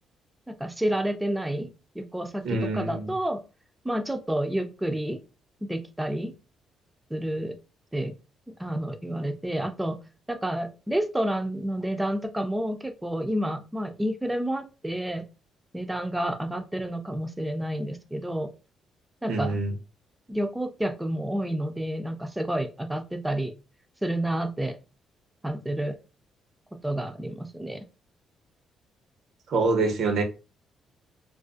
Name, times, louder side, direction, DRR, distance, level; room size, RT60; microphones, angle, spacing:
voice 1, 0.5-1.7 2.0-3.4 3.8-5.2 5.7-6.3 7.1-7.5 7.9-8.1 8.6-10.0 10.3-15.3 15.7-18.5 19.2-19.6 20.3-23.5 24.0-24.8 25.4-26.0 26.7-27.8, right 1 dB, 10° right, 0.4 m, -29 dB
voice 2, 2.4-3.0 19.3-19.7 29.5-30.2, right 3 dB, 75° right, 0.6 m, -25 dB
2.4 x 2.3 x 2.4 m
cardioid pair, 90°, 0 cm